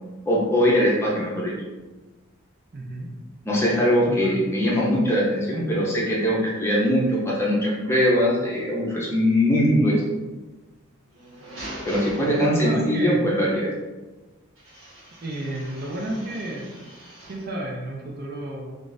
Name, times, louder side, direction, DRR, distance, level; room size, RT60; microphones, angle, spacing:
voice 1, 0.3-1.5 3.5-10.0 11.9-13.7, equal, 10° left, -5 dB, 0.6 m, -21 dB
voice 2, 2.7-3.1 4.1-4.4 12.1-13.4 15.2-16.8 17.3-18.7, right 1 dB, 45° right, -1 dB, 0.5 m, -32 dB
sound 1, 11.1-13.0 14.6-17.5, right 1 dB, 80° right, 1.0 m, -42 dB
2.4 x 2.4 x 4.0 m, 1.2 s
head